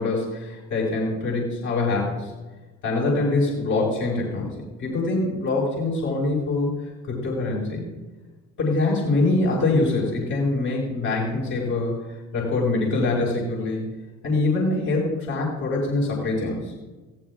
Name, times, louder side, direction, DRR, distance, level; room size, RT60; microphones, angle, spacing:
voice 1, 0.0-2.3 2.8-6.7 7.1-7.8 8.6-11.9 12.3-13.8 14.2-16.7, left 2 dB, 80° left, -6 dB, 5.7 m, -24 dB
24.0 x 16.0 x 2.5 m, 1.2 s
cardioid pair, 90°, 30 cm